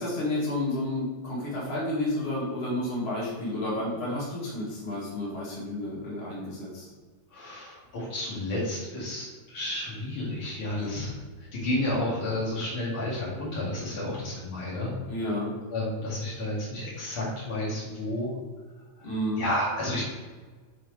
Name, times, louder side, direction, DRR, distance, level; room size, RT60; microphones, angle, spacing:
voice 1, 0.0-6.8 10.7-11.0 15.1-15.5 19.0-19.4, left 1 dB, 50° left, -6 dB, 1.6 m, -31 dB
voice 2, 7.3-14.9 15.7-18.3 19.0-19.1 19.4-20.0, left 1 dB, 70° left, -8 dB, 1.2 m, -31 dB
6.3 x 4.1 x 4.8 m, 1.4 s
omnidirectional pair, 5.3 m